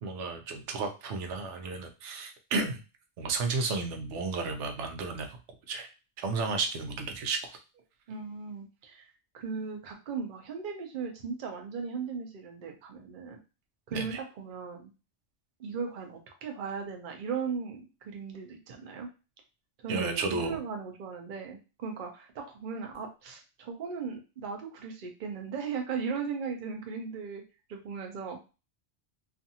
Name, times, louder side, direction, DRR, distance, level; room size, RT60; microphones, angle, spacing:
voice 1, 0.0-2.8 3.2-5.3 5.7-5.9 6.2-7.6 13.9-14.2 19.9-20.6, right 4 dB, 90° right, 5 dB, 0.9 m, -32 dB
voice 2, 8.1-13.4 13.9-14.9 15.6-19.1 19.8-27.4 27.7-28.5, right 5 dB, 55° right, 3 dB, 0.7 m, -37 dB
2.5 x 2.4 x 2.7 m, 0.30 s
omnidirectional pair, 1.2 m